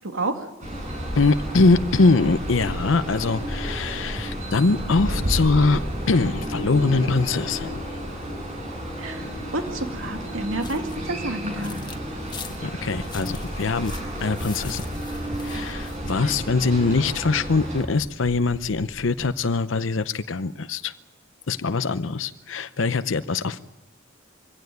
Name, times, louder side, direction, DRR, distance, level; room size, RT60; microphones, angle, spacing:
voice 1, 0.1-0.5 9.0-9.3 9.5-11.8, right 2 dB, 85° right, 6 dB, 2.4 m, -29 dB
sound 1, 0.6-17.8, equal, 40° right, 8.0 m, -32 dB
voice 2, 1.2-5.8 6.1-8.0 12.6-13.9 14.2-14.8 15.4-20.9 21.5-23.6, left 3 dB, 70° left, 12 dB, 0.7 m, -22 dB
sound 2, 2.1-19.3, equal, ahead, 8.0 m, -39 dB
Bushwalking sounds, 10.5-12.0 12.3-16.5, left 4 dB, 20° left, 1.7 m, -41 dB
24.0 x 16.5 x 9.4 m, 0.99 s
head